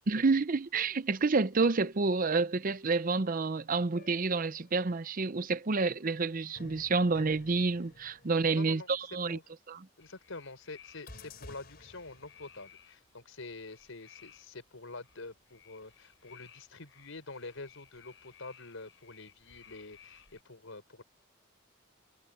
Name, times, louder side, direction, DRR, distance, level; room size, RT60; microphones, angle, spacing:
voice 1, 0.1-9.4 9.7-9.8, right 3 dB, 45° right, 0.7 m, -29 dB
sound 1, 3.9-5.0 6.6-9.2 11.1-12.8, left 2 dB, 50° left, 4.6 m, -54 dB
voice 2, 8.5-8.9 9.3-9.4 10.0-21.0, left 3 dB, 85° left, 4.4 m, -47 dB
sound 2, 10.0-20.4, left 8 dB, 65° left, 7.4 m, -59 dB
head